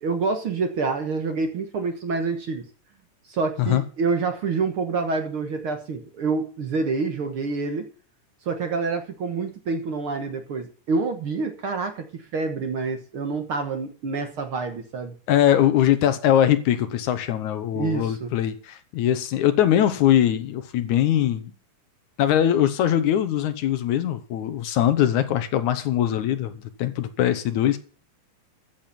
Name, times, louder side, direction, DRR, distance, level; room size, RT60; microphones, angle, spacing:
voice 1, 0.0-2.6 3.3-7.8 8.4-15.1 17.7-18.3, right 4 dB, 50° right, 1.9 m, -27 dB
voice 2, 15.3-21.5 22.2-26.5 26.8-27.8, left 11 dB, 70° left, 2.4 m, -21 dB
14.0 x 7.4 x 5.9 m
omnidirectional pair, 3.6 m